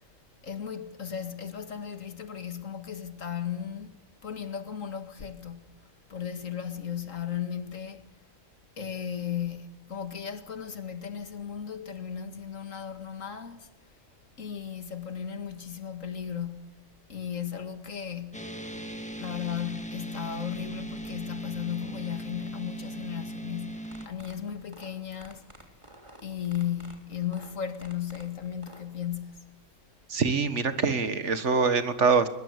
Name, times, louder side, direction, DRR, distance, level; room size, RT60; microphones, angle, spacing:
voice 1, 0.4-8.1 8.8-13.7 14.4-18.5 19.2-25.5 26.2-29.6, left 9 dB, 90° left, 2.2 m, -36 dB
sound 1, 18.3-24.1, right 1 dB, 5° left, 1.7 m, -38 dB
sound 2, 23.8-28.8, right 1 dB, 20° right, 3.3 m, -51 dB
voice 2, 30.1-32.3, right 5 dB, 65° right, 1.9 m, -24 dB
21.5 x 21.5 x 8.1 m
omnidirectional pair, 1.3 m